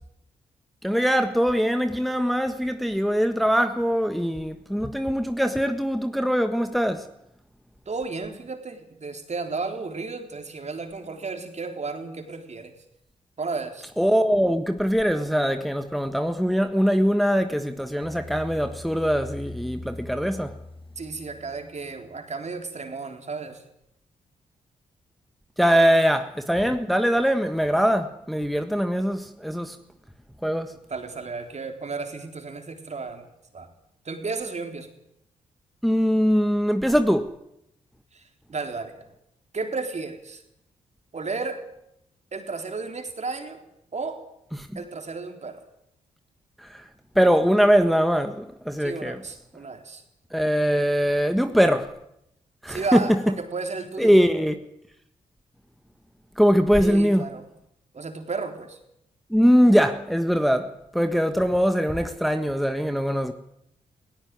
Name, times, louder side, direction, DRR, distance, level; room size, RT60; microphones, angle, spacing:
voice 1, 0.8-7.1 14.0-20.5 25.6-29.8 30.4-30.8 35.8-37.3 44.6-44.7 46.6-46.8 47.1-49.2 50.3-51.9 52.6-53.3 54.0-54.6 56.4-57.3 59.3-63.3, equal, ahead, 1.5 m, -22 dB
voice 2, 7.9-12.7 13.4-13.9 21.0-23.6 30.9-33.2 33.5-33.7 34.1-34.9 38.1-39.0 39.5-40.4 41.1-41.6 42.3-43.6 43.9-44.2 44.7-45.6 48.8-50.0 52.7-54.3 56.8-57.4 57.9-58.8, right 4 dB, 45° right, 3.9 m, -33 dB
sound 1, 18.0-22.1, left 2 dB, 35° left, 1.9 m, -41 dB
17.5 x 16.5 x 9.6 m
hypercardioid pair, 40°, 16 cm